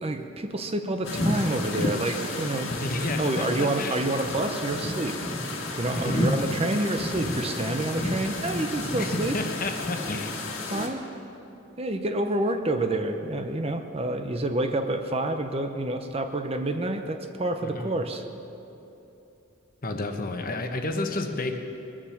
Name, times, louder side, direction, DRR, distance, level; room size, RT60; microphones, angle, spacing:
voice 1, 0.0-2.7 3.0-5.2 5.8-9.4 10.7-11.0 11.8-18.2, right 2 dB, 30° right, 6 dB, 0.7 m, -28 dB
sound 1, 1.0-10.9, left 1 dB, 70° left, 2.0 m, -31 dB
voice 2, 2.8-4.0 5.9-6.3 8.9-10.4 17.6-17.9 19.8-21.6, left 2 dB, 40° left, 5 dB, 1.1 m, -31 dB
22.0 x 7.4 x 7.1 m, 3.0 s
head